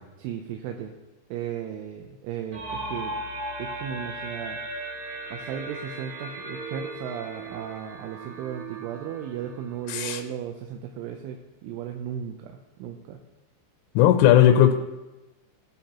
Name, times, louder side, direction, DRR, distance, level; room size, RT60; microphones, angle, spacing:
voice 1, 0.2-0.9 1.3-3.1 3.6-4.6 5.3-13.2, right 9 dB, 80° right, 4 dB, 3.2 m, -35 dB
sound 1, 2.5-10.1, right 2 dB, 45° right, 4.0 m, -37 dB
voice 2, 9.9-10.2 14.0-14.7, left 11 dB, 90° left, 5 dB, 3.3 m, -17 dB
19.0 x 8.5 x 3.0 m, 1.1 s
omnidirectional pair, 5.6 m